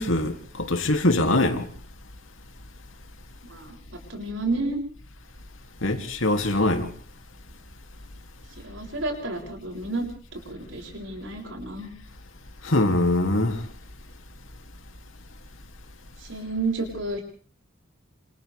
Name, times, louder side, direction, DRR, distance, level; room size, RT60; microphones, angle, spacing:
voice 1, 0.0-1.7 5.8-6.9 12.6-13.7, left 2 dB, 75° left, 2.8 m, -23 dB
voice 2, 3.4-3.8 4.1-4.8 8.6-10.1 10.3-11.9 16.2-17.2, right 2 dB, 75° right, 7.2 m, -30 dB
28.0 x 27.5 x 3.5 m
head